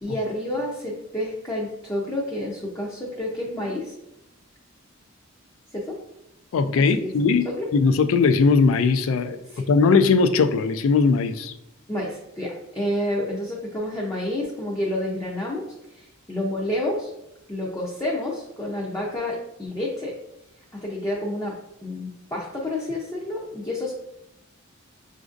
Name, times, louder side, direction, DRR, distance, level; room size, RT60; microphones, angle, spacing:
voice 1, 0.0-3.9 5.7-6.0 6.9-7.1 7.4-7.7 9.5-9.7 11.9-17.1 17.5-20.1 20.7-21.6 21.8-23.9, left 1 dB, 15° left, -4 dB, 0.5 m, -29 dB
voice 2, 6.5-11.5, left 4 dB, 70° left, 10 dB, 0.3 m, -19 dB
5.9 x 2.5 x 2.5 m, 0.84 s
head